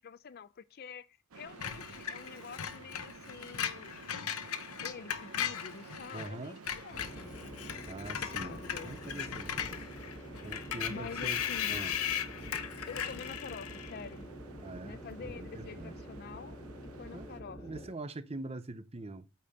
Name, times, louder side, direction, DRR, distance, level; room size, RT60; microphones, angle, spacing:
voice 1, 0.0-4.0 4.8-7.8 8.2-9.4 10.9-11.9 12.9-14.3 14.8-16.6 17.0-17.8, left 5 dB, 45° left, 0.4 m, -47 dB
sound 1, 1.3-17.4, right 4 dB, 85° right, 0.8 m, -53 dB
Screech, 1.6-6.3 6.6-14.0, left 9 dB, 85° left, 0.9 m, -38 dB
voice 2, 6.1-6.6 7.8-8.6 8.8-9.6 10.4-11.4 11.7-12.0 14.6-15.9 17.1-17.3 17.6-19.3, right 2 dB, 30° right, 0.6 m, -43 dB
sound 2, 6.9-18.0, equal, 25° left, 2.7 m, -47 dB
8.5 x 4.4 x 5.0 m
head